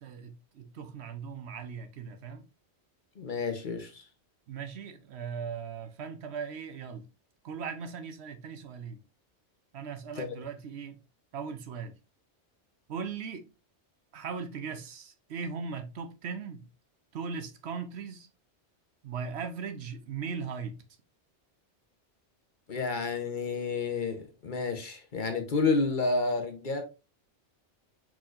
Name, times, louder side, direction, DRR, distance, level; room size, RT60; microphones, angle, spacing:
voice 1, 0.0-2.5 4.5-7.0 7.4-9.0 9.7-11.0 11.3-11.9 12.9-13.4 14.1-16.7 17.1-18.3 19.0-20.8, right 6 dB, 70° right, 0.9 m, -38 dB
voice 2, 3.2-4.0 10.1-10.3 22.7-26.8, left 4 dB, 50° left, 0.9 m, -30 dB
4.5 x 4.3 x 2.5 m
omnidirectional pair, 1.2 m